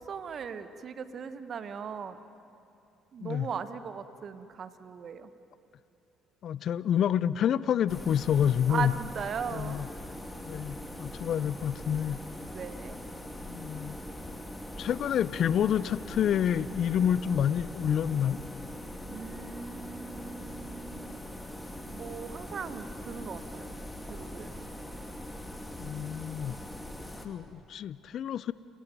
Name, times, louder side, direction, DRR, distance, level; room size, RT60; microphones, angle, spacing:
voice 1, 0.0-2.2 3.1-5.3 8.7-9.8 12.5-13.0 19.1-21.2 21.8-23.8 24.1-24.7, right 6 dB, 50° right, 11 dB, 1.3 m, -38 dB
voice 2, 6.4-8.9 9.5-9.9 10.4-12.2 13.5-14.0 14.8-18.4 25.8-26.6 27.2-28.5, left 9 dB, 60° left, 18 dB, 0.5 m, -28 dB
sound 1, 7.9-27.3, left 1 dB, 10° left, 2.6 m, -42 dB
30.0 x 14.5 x 9.3 m, 2.7 s
supercardioid pair, 65°, 0 cm